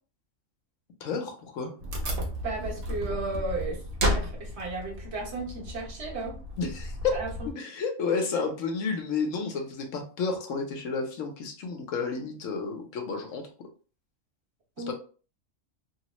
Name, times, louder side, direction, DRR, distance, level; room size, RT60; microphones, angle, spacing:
voice 1, 1.0-1.7 6.6-13.7 14.9-15.0, left 4 dB, 75° left, 4 dB, 1.0 m, -31 dB
Wood, 1.8-7.5, equal, 75° right, 1.2 m, -33 dB
voice 2, 2.4-3.8 4.1-6.3 7.1-7.3 14.8-14.9, right 3 dB, 55° right, -3 dB, 1.3 m, -34 dB
3.0 x 2.0 x 2.9 m, 0.38 s
omnidirectional pair, 1.4 m